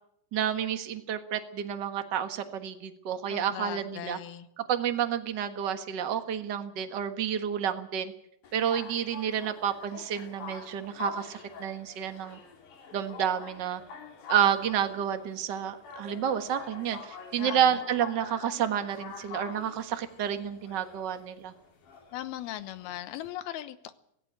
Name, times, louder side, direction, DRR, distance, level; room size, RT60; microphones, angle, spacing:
voice 1, 0.3-4.2 4.6-8.1 8.5-12.4 12.9-13.8 14.3-21.5, right 9 dB, 65° right, 8 dB, 1.1 m, -30 dB
voice 2, 3.3-4.5 17.4-17.7 22.1-23.9, left 13 dB, 80° left, 13 dB, 2.9 m, -38 dB
sound 1, 8.4-23.3, left 5 dB, 55° left, 3.8 m, -44 dB
17.0 x 17.0 x 9.0 m, 0.73 s
omnidirectional pair, 4.5 m